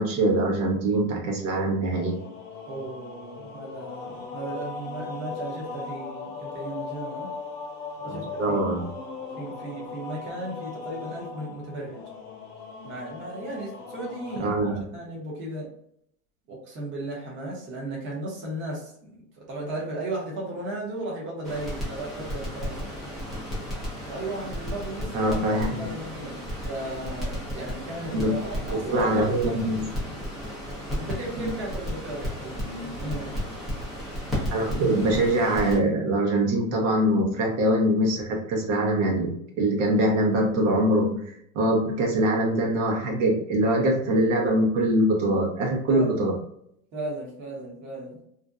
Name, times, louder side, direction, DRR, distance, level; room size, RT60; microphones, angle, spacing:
voice 1, 0.0-2.2 8.0-8.9 14.4-14.8 25.1-25.8 28.1-28.4 28.7-29.9 31.4-31.5 34.5-46.4, right 1 dB, 60° right, -1 dB, 0.8 m, -23 dB
sound 1, 1.8-14.4, left 4 dB, 50° left, 0.8 m, -38 dB
voice 2, 2.7-7.3 8.0-8.6 9.4-12.0 12.8-14.6 14.9-15.7 16.5-22.9 24.0-25.4 25.7-26.4 26.7-29.1 29.4-29.6 31.0-33.4 45.9-46.1 46.9-48.2, right 2 dB, 25° right, -3 dB, 0.7 m, -35 dB
Crackle, 21.4-35.8, equal, ahead, 0.4 m, -34 dB
2.5 x 2.1 x 2.4 m, 0.70 s
supercardioid pair, 145°, 44 cm